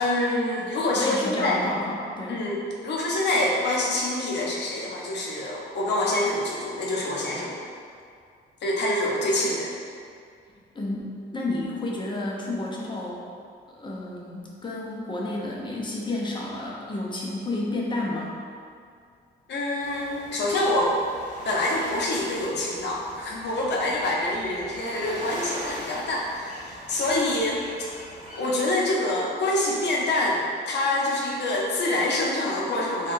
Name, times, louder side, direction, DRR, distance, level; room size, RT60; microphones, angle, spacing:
voice 1, 0.0-1.6 2.3-7.6 8.6-9.7 19.5-21.0 21.4-27.9 28.3-33.1, left 1 dB, 60° left, -3 dB, 0.7 m, -26 dB
voice 2, 0.6-2.4 10.7-13.3 13.7-18.3, left 2 dB, 25° left, -3 dB, 0.6 m, -31 dB
sound 1, 19.8-28.4, equal, 45° right, 1.2 m, -41 dB
3.5 x 2.3 x 2.6 m, 2.2 s
cardioid pair, 90°, 20 cm